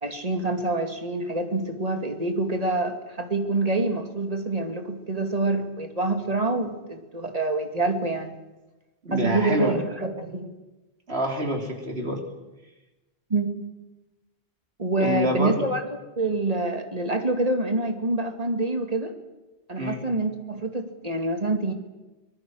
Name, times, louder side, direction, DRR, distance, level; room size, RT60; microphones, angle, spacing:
voice 1, 0.0-8.3 9.1-10.5 13.3-13.6 14.8-15.8 16.2-19.1 19.7-21.7, right 2 dB, 40° right, 6 dB, 2.5 m, -26 dB
voice 2, 9.0-9.8 11.1-12.2 15.0-15.7 19.8-20.0, equal, 90° right, 3 dB, 3.7 m, -26 dB
24.5 x 19.5 x 6.4 m, 1.1 s
omnidirectional pair, 1.0 m